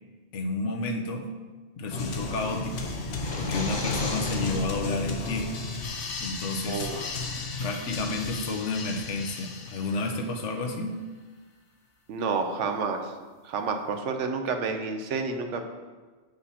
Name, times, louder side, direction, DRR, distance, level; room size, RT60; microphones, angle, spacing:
voice 1, 0.3-1.3 1.8-3.0 3.4-5.5 6.2-6.9 7.6-11.0, left 2 dB, 90° left, 5 dB, 1.1 m, -31 dB
sound 1, 1.9-10.4, left 3 dB, 70° left, 1.0 m, -34 dB
sound 2, 3.1-4.9, left 2 dB, 25° left, 0.8 m, -35 dB
voice 2, 6.7-7.0 12.1-13.1 13.4-15.6, right 4 dB, 80° right, 6 dB, 1.1 m, -29 dB
7.2 x 5.1 x 4.2 m, 1.4 s
omnidirectional pair, 1.2 m